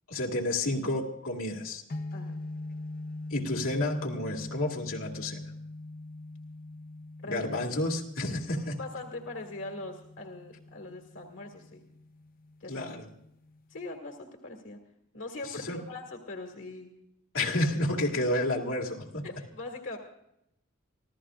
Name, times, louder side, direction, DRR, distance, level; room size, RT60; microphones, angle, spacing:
voice 1, 0.1-1.8 3.3-5.4 7.3-8.7 12.7-13.1 15.6-15.8 17.3-19.2, left 1 dB, 80° left, -1 dB, 2.2 m, -30 dB
sound 1, 1.9-14.0, left 2 dB, 45° left, 0.6 m, -43 dB
voice 2, 8.5-11.8 12.6-12.9 13.7-14.8 15.1-16.9 19.2-20.0, left 2 dB, 60° left, 4 dB, 1.9 m, -41 dB
26.0 x 15.5 x 2.5 m, 0.79 s
head